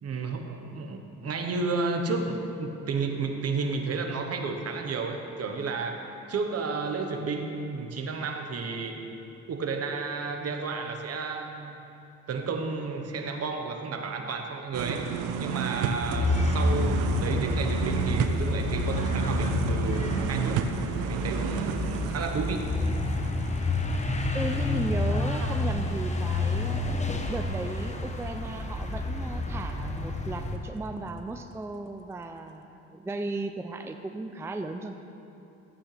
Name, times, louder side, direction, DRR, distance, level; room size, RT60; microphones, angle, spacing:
voice 1, 0.0-9.0 9.5-11.8 12.3-15.1 15.4-20.6 21.0-22.7 25.3-25.6, right 4 dB, 55° right, 4 dB, 1.1 m, -32 dB
sound 1, 14.7-24.6 24.9-25.0, right 7 dB, 90° right, 0.6 m, -32 dB
sound 2, 16.0-30.6, left 2 dB, 25° left, 1.0 m, -29 dB
voice 2, 24.3-26.9 27.3-34.9, right 2 dB, 10° right, 6 dB, 0.4 m, -35 dB
15.0 x 8.6 x 3.3 m, 2.8 s
cardioid pair, 90°, 30 cm